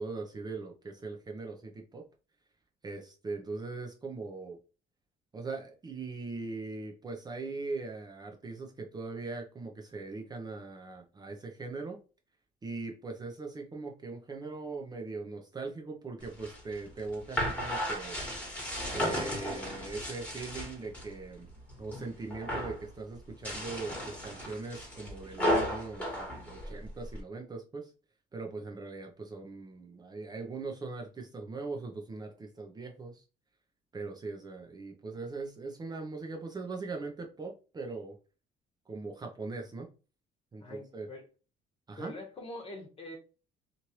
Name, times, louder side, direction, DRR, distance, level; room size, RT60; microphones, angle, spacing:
voice 1, 0.0-2.0 2.8-4.6 5.3-12.0 12.6-18.2 18.9-21.5 21.8-27.9 28.3-33.2 33.9-38.2 38.9-39.9 40.5-41.1 41.9-42.1, right 3 dB, 25° right, 0.6 m, -40 dB
sound 1, 16.2-21.1 21.5-22.0 22.3-22.8 23.3-27.2, equal, 10° left, 1.4 m, -34 dB
voice 2, 40.6-41.2 42.0-43.2, left 1 dB, 35° left, 1.2 m, -44 dB
3.0 x 2.5 x 2.9 m
cardioid pair, 110°, 17 cm